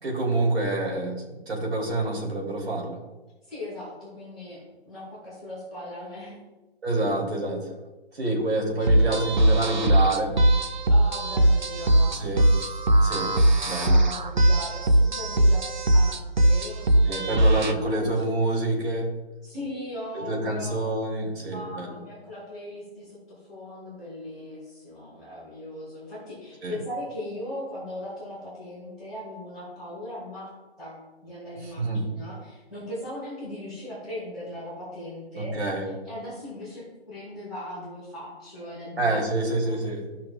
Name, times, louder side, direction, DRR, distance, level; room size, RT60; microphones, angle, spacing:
voice 1, 0.0-3.0 6.8-7.7 8.1-10.3 12.2-12.4 13.0-13.3 13.7-14.0 17.1-19.1 20.1-22.0 26.6-26.7 31.8-32.0 35.4-35.8 39.0-40.0, right 2 dB, 75° right, -2 dB, 2.8 m, -27 dB
voice 2, 3.5-6.4 8.2-8.3 10.9-12.4 13.8-18.2 19.4-20.9 21.5-30.5 30.8-35.5 36.0-39.3 39.6-39.8, left 1 dB, ahead, -16 dB, 1.5 m, -39 dB
sound 1, 8.9-17.7, right 1 dB, 45° right, 0.5 m, -20 dB
14.0 x 5.7 x 2.3 m, 1.1 s
hypercardioid pair, 175°, 32 cm